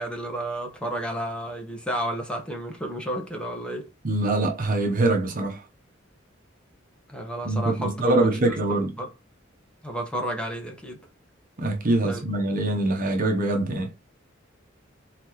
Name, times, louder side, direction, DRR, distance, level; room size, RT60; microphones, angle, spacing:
voice 1, 0.0-3.9 7.1-9.1 9.8-11.0 12.0-12.2, right 1 dB, 5° left, 1.2 m, -32 dB
voice 2, 4.0-5.6 7.4-8.9 11.6-13.9, right 2 dB, 45° right, 0.9 m, -24 dB
4.3 x 3.9 x 3.0 m
head